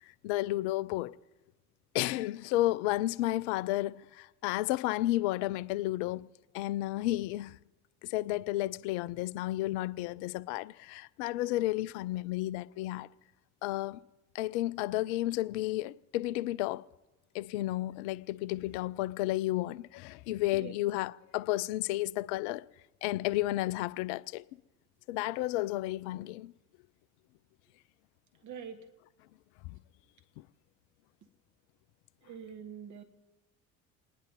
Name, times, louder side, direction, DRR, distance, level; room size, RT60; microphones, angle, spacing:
voice 1, 0.0-1.2 1.9-6.3 6.5-7.6 8.0-13.1 13.6-14.0 14.3-16.8 17.3-22.6 23.0-24.4 25.1-26.5 29.6-29.8, left 16 dB, 55° left, 0.5 m, -32 dB
voice 2, 28.4-28.9 32.2-33.0, right 7 dB, 40° right, 1.9 m, -44 dB
29.0 x 10.5 x 4.1 m
figure-of-eight pair, 60°, 43 cm